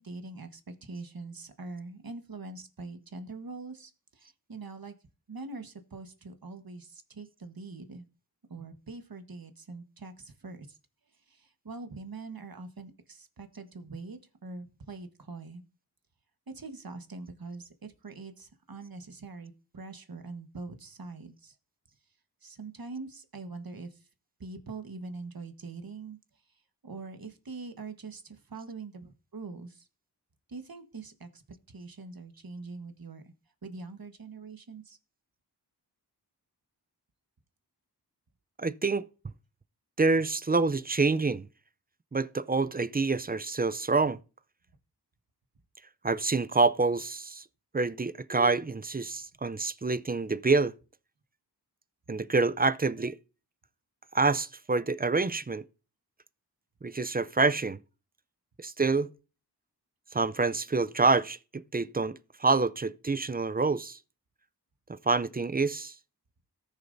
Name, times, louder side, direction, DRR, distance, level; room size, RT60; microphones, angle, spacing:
voice 1, 0.0-4.9 5.3-8.0 8.5-10.8 11.3-15.6 16.5-21.6 22.4-24.1 24.4-26.2 26.8-29.9 30.5-33.3 33.6-35.0, right 3 dB, 60° right, 1.4 m, -43 dB
voice 2, 38.6-39.1 40.0-41.5 42.1-44.2 46.0-47.4 47.7-50.7 52.1-53.1 54.1-55.6 56.8-57.8 58.6-59.1 60.1-64.0 65.1-65.9, right 3 dB, 25° right, 0.5 m, -27 dB
18.0 x 6.6 x 2.7 m
wide cardioid pair, 55°, 40 cm